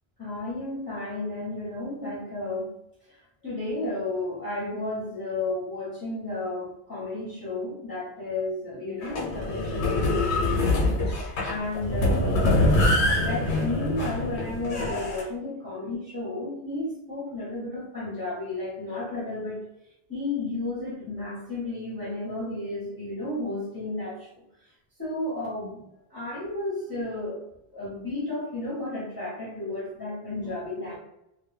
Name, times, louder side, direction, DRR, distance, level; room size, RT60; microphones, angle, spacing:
voice 1, 0.2-2.7 3.1-12.5 13.2-19.6 20.1-24.4 25.0-25.8 26.1-27.4 27.7-31.0, left 2 dB, 25° left, -8 dB, 0.7 m, -33 dB
sound 1, 9.0-15.2, left 1 dB, 85° left, 0.9 m, -24 dB
2.2 x 2.2 x 3.2 m, 0.83 s
omnidirectional pair, 1.1 m